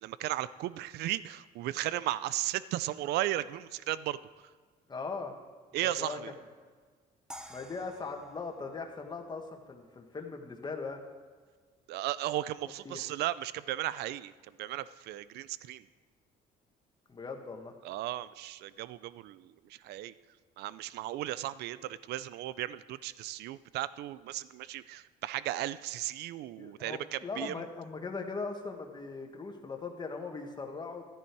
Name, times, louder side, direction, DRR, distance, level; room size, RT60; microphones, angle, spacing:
voice 1, 0.0-4.5 5.7-6.3 11.9-15.8 17.8-20.1 20.6-27.6, right 14 dB, 75° right, 17 dB, 0.5 m, -35 dB
voice 2, 4.9-5.3 5.8-6.2 7.5-11.0 12.8-13.0 17.1-17.7 26.6-31.0, left 4 dB, 25° left, 3 dB, 1.7 m, -39 dB
sound 1, 7.3-10.4, equal, 5° right, 0.8 m, -52 dB
13.5 x 10.0 x 4.7 m, 1.5 s
cardioid pair, 110°, 17 cm